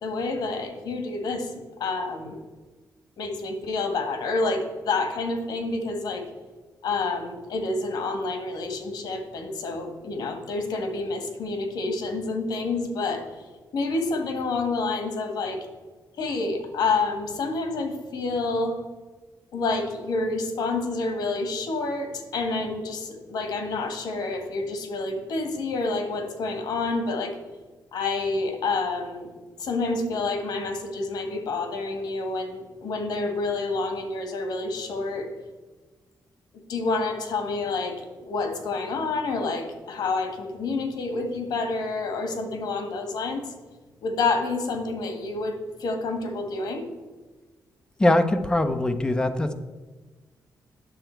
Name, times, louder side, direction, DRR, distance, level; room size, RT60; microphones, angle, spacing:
voice 1, 0.0-2.4 3.2-6.2 6.8-15.7 16.2-18.8 19.5-27.4 27.9-29.3 29.6-35.3 36.7-43.5 44.0-46.9, left 3 dB, 85° left, 5 dB, 1.6 m, -28 dB
voice 2, 48.0-49.5, left 1 dB, 10° left, 7 dB, 0.5 m, -22 dB
9.1 x 6.8 x 4.5 m, 1.3 s
wide cardioid pair, 175°, 7 cm